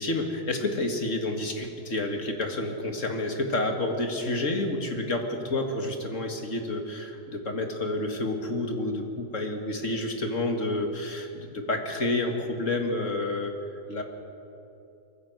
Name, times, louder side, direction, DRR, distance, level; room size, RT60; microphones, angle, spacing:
voice 1, 0.0-13.5 13.9-14.0, left 2 dB, 45° left, 4 dB, 2.2 m, -29 dB
22.5 x 15.0 x 8.0 m, 2.8 s
omnidirectional pair, 1.8 m